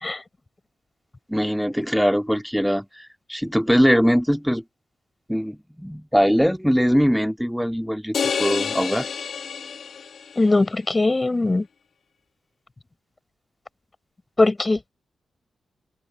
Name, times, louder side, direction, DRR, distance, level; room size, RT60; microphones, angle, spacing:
voice 1, 1.3-4.6 5.3-9.1, equal, ahead, 2.1 m, -21 dB
sound 1, 8.1-10.5, left 6 dB, 70° left, 2.1 m, -28 dB
voice 2, 10.4-11.7 14.4-14.9, left 2 dB, 30° left, 4.9 m, -20 dB
open air
cardioid pair, 55°, 0 cm